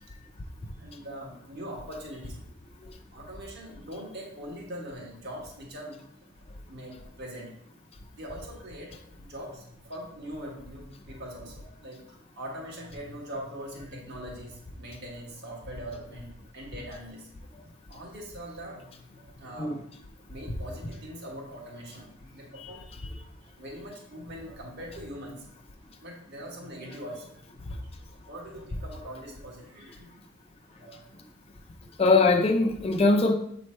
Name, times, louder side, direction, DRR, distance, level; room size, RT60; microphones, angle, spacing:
voice 1, 0.8-2.3 3.1-6.0 6.7-7.5 8.1-8.9 9.2-12.0 12.3-17.3 17.9-19.8 20.3-22.8 23.6-25.4 26.0-30.1 30.8-31.1, equal, 50° right, -2 dB, 1.4 m, -42 dB
voice 2, 32.0-33.3, left 3 dB, 25° left, 3 dB, 0.5 m, -21 dB
7.2 x 3.1 x 4.3 m, 0.70 s
head